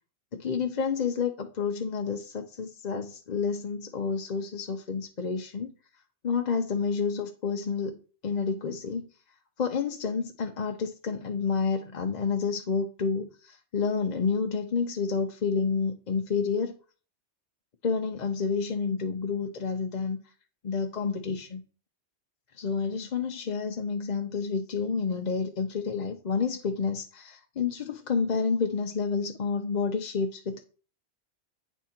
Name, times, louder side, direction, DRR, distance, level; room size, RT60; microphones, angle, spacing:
voice 1, 0.3-5.7 6.2-8.0 8.2-9.0 9.6-16.8 17.8-20.2 20.6-21.6 22.6-30.6, left 5 dB, 45° left, 0.7 m, -29 dB
9.2 x 3.7 x 4.3 m
omnidirectional pair, 1.1 m